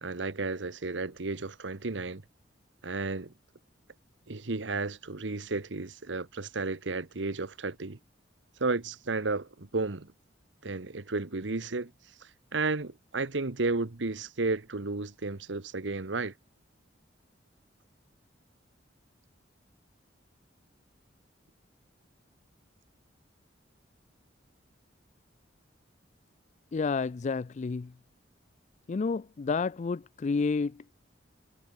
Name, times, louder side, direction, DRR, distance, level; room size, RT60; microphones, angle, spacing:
voice 1, 0.0-2.2 2.8-3.3 4.3-8.0 8.6-10.1 10.6-16.3, right 3 dB, 70° right, 1.2 m, -33 dB
voice 2, 26.7-27.9 28.9-30.9, left 4 dB, 40° left, 0.4 m, -30 dB
head